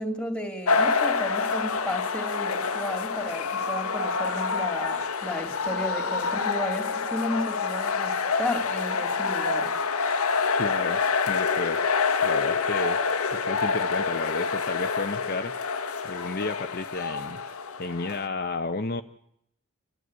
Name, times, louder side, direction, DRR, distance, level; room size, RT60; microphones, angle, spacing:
voice 1, 0.0-9.7, left 1 dB, 5° left, 6 dB, 2.6 m, -33 dB
sound 1, 0.7-18.3, left 5 dB, 85° left, 1.3 m, -27 dB
voice 2, 10.6-11.9 12.2-13.0 13.3-15.7 16.0-17.4 17.8-19.0, left 3 dB, 45° left, 7 dB, 0.8 m, -32 dB
29.5 x 12.5 x 9.6 m, 0.75 s
head